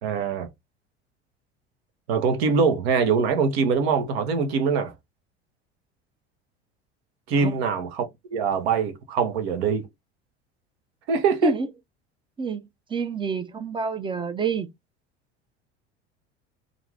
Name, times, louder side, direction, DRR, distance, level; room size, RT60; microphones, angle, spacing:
voice 1, 0.0-0.5 2.1-4.9 7.3-9.9 11.1-11.6, right 5 dB, 70° right, 0.8 m, -23 dB
voice 2, 12.4-14.7, right 5 dB, 15° right, 0.4 m, -28 dB
2.5 x 2.4 x 3.2 m
hypercardioid pair, 75°, 33 cm